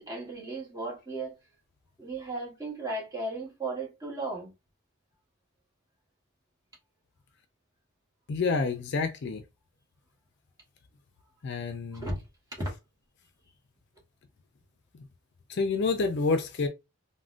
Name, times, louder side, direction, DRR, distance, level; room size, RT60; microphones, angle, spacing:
voice 1, 0.0-1.3 2.0-4.5 11.9-12.2 12.5-12.7, right 2 dB, 15° right, 1.1 m, -35 dB
voice 2, 8.3-9.4 11.4-12.1 15.5-16.7, left 4 dB, 50° left, 0.4 m, -28 dB
3.6 x 2.1 x 2.4 m
head